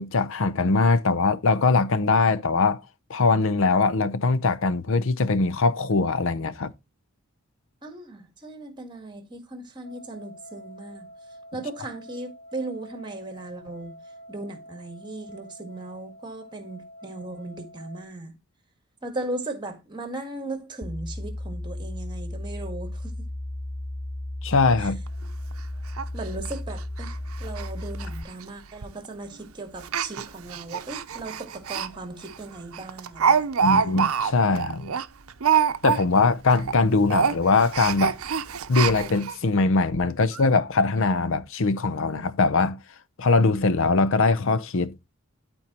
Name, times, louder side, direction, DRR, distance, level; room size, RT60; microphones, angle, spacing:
voice 1, 0.0-2.8 3.1-6.7 24.4-25.0 33.6-34.9 35.8-38.2 38.7-42.8 43.2-44.9, left 3 dB, 65° left, 0.6 m, -22 dB
voice 2, 7.8-11.1 11.5-13.9 14.3-18.3 19.0-23.3 24.8-24.9 26.1-27.1 27.4-33.5, right 2 dB, 20° right, 1.6 m, -37 dB
sound 1, 9.8-18.0, equal, 35° left, 3.8 m, -47 dB
sound 2, 20.8-28.2, left 1 dB, 5° left, 0.3 m, -34 dB
Speech, 25.1-25.2 25.5-25.6 26.0-26.1 26.4-26.5 27.0-27.1 27.4-27.7 27.9-28.1 28.8-29.1 29.8-31.9 32.3-32.4 32.7-36.3 36.6-36.8 37.1-39.4 39.9-40.0 40.3-40.4, right 7 dB, 85° right, 0.6 m, -25 dB
12.0 x 4.4 x 2.9 m
head